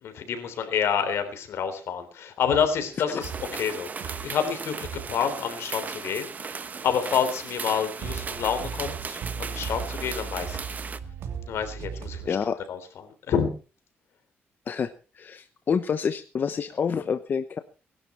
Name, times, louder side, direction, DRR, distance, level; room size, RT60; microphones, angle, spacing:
voice 1, 0.0-10.8 11.5-12.4 12.7-13.5, left 7 dB, 80° left, 9 dB, 3.5 m, -28 dB
sound 1, 2.5-3.7 4.0-4.4 4.8-7.3 7.6-7.7 8.0-12.4, right 6 dB, 90° right, 3.1 m, -38 dB
sound 2, 3.2-11.0, right 5 dB, 40° right, 1.2 m, -37 dB
voice 2, 12.2-12.6 14.7-17.6, left 6 dB, 45° left, 10 dB, 1.0 m, -28 dB
20.5 x 12.0 x 4.4 m, 0.35 s
cardioid pair, 125°, 4 cm